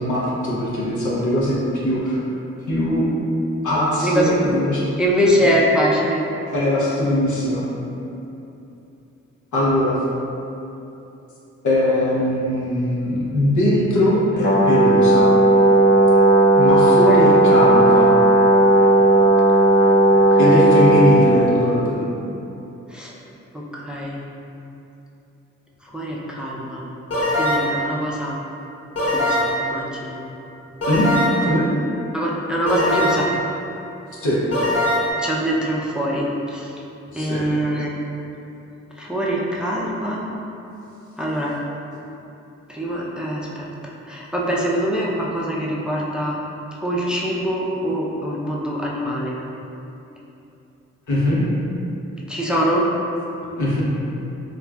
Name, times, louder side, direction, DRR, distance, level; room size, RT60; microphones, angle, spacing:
voice 1, 0.0-1.6 1.8-2.2 2.7-3.1 3.6-4.9 5.4-5.5 6.5-7.6 9.5-10.0 11.6-15.3 16.6-18.1 20.4-22.0 30.9-31.1 31.4-31.7 34.2-34.4 37.1-37.5 51.1-51.4 53.6-53.8, left 1 dB, 80° left, -6 dB, 0.7 m, -20 dB
voice 2, 4.0-4.4 5.0-6.2 17.1-17.2 20.3-20.7 22.9-23.1 23.5-24.2 25.8-26.8 27.3-28.4 29.1-30.2 32.1-33.3 35.1-36.7 37.1-37.9 39.0-40.3 41.2-41.6 42.7-46.4 46.8-49.4 52.3-52.9, equal, 5° right, -4 dB, 0.4 m, -23 dB
Brass instrument, 14.4-21.4, right 2 dB, 35° left, 0.6 m, -14 dB
sound 1, 27.1-27.8 29.0-29.7 30.8-31.6 32.7-33.4 34.5-35.1, left 1 dB, 55° left, 1.0 m, -21 dB
3.0 x 2.4 x 2.2 m, 2.9 s
cardioid pair, 50°, 29 cm